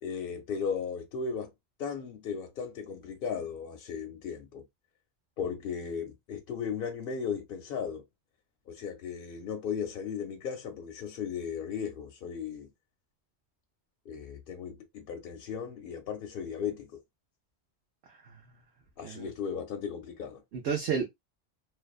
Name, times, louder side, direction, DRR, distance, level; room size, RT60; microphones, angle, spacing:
voice 1, 0.0-1.5 1.8-4.6 5.4-8.0 8.7-12.7 14.1-17.0 19.0-20.4, left 6 dB, 65° left, 0.7 m, -36 dB
voice 2, 18.1-18.5 19.0-19.3 20.5-21.0, right 6 dB, 75° right, 0.9 m, -32 dB
2.6 x 2.2 x 2.3 m
omnidirectional pair, 1.1 m